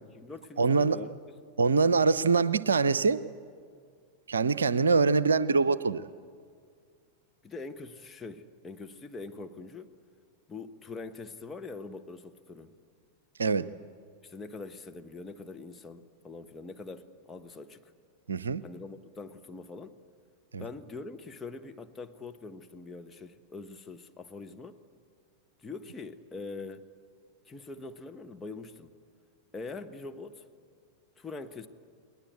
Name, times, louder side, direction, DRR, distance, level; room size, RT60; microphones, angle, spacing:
voice 1, 0.0-1.4 7.4-9.9 10.5-12.7 14.2-17.8 18.6-20.0 20.6-24.8 25.6-26.8 27.5-28.9 29.5-30.5 31.2-31.7, left 3 dB, 15° left, 1.5 m, -43 dB
voice 2, 0.6-1.0 1.6-3.2 4.3-6.0 13.4-13.7 18.3-18.6 20.5-20.7, right 4 dB, 70° right, 0.7 m, -24 dB
30.0 x 20.5 x 8.4 m
figure-of-eight pair, 90°, 0 cm